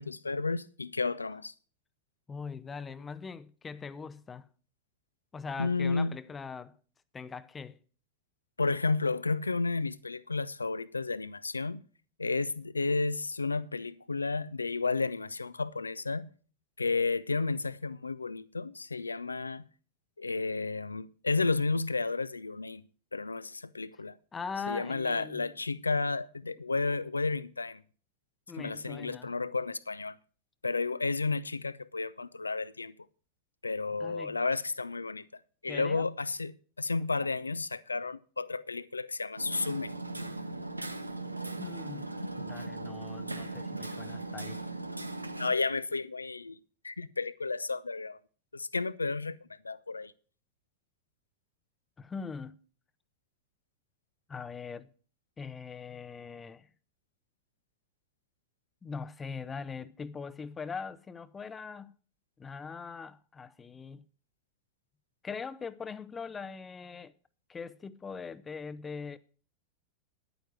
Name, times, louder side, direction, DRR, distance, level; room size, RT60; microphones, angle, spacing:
voice 1, 0.0-1.5 5.6-6.2 8.6-11.8 12.2-16.3 16.8-19.6 20.2-22.8 23.1-24.1 24.7-27.8 28.6-30.2 30.6-32.9 33.6-35.3 35.6-39.9 45.4-48.2 48.5-49.4 49.6-50.1, left 3 dB, 80° left, 0.5 m, -32 dB
voice 2, 2.3-4.5 5.3-6.8 7.1-7.8 24.3-25.5 28.5-29.3 34.0-34.4 35.7-36.1 37.1-37.3 41.6-42.1 42.4-44.6 52.0-52.6 54.3-54.9 55.4-56.7 58.8-61.9 62.4-64.0 65.2-67.1 67.5-69.2, left 5 dB, 15° left, 0.6 m, -41 dB
Hammer, 39.4-45.5, right 2 dB, 85° right, 0.8 m, -38 dB
10.5 x 9.0 x 6.1 m
figure-of-eight pair, 90°, 0 cm